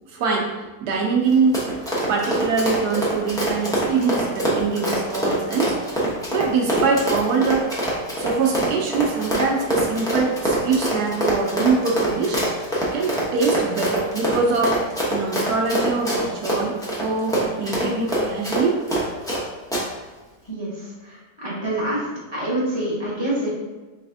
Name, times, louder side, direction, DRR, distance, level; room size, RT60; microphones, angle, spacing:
voice 1, 0.1-1.6 2.1-6.0 6.3-7.7 8.2-12.4 12.9-14.8 15.1-18.8, right 4 dB, 75° right, 0 dB, 1.1 m, -23 dB
Run, 1.3-19.4 19.7-19.8, right 1 dB, 5° left, 0.3 m, -24 dB
voice 2, 20.5-22.1 22.3-23.5, right 1 dB, 20° left, -7 dB, 0.8 m, -26 dB
4.0 x 3.4 x 2.6 m, 1.3 s
omnidirectional pair, 1.8 m